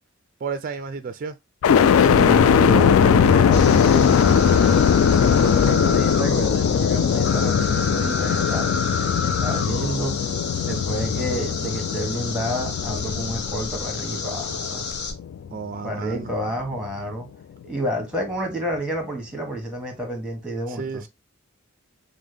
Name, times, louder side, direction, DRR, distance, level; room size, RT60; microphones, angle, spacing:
voice 1, 0.4-1.3 15.5-16.3 20.8-21.1, right 5 dB, 40° right, 0.4 m, -31 dB
sound 1, 1.6-15.6 16.1-16.9, left 7 dB, 80° left, 0.3 m, -20 dB
voice 2, 2.0-4.1 5.1-8.7 9.4-10.2 10.6-14.9 15.8-17.3 17.6-21.1, right 1 dB, 5° right, 1.2 m, -29 dB
sound 2, 3.5-15.1, left 4 dB, 55° left, 0.8 m, -30 dB
5.2 x 2.1 x 3.3 m
head